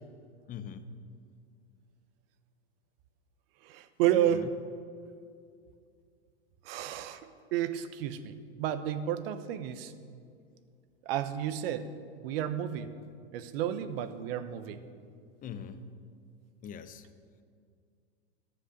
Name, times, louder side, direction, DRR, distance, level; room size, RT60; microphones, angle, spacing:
voice 1, 0.5-1.1 4.1-4.5 15.4-16.0 16.6-17.1, left 7 dB, 25° left, 11 dB, 0.7 m, -42 dB
voice 2, 3.6-4.5 6.6-9.9 11.1-11.9 12.2-12.9 13.3-14.8, right 11 dB, 60° right, 11 dB, 0.9 m, -31 dB
11.5 x 7.5 x 6.5 m, 2.3 s
hypercardioid pair, 110°, 33 cm